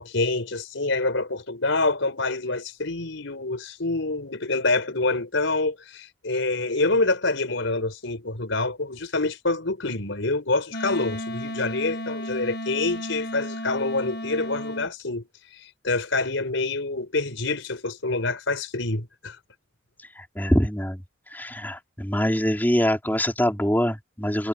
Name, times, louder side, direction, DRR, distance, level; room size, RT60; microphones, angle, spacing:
voice 1, 0.0-15.2 15.6-19.4, left 3 dB, 85° left, 4.4 m, -26 dB
Wind instrument woodwind instrument, 10.7-14.9, equal, 50° left, 1.4 m, -33 dB
voice 2, 20.1-21.0 21.3-24.5, equal, 10° left, 4.5 m, -24 dB
head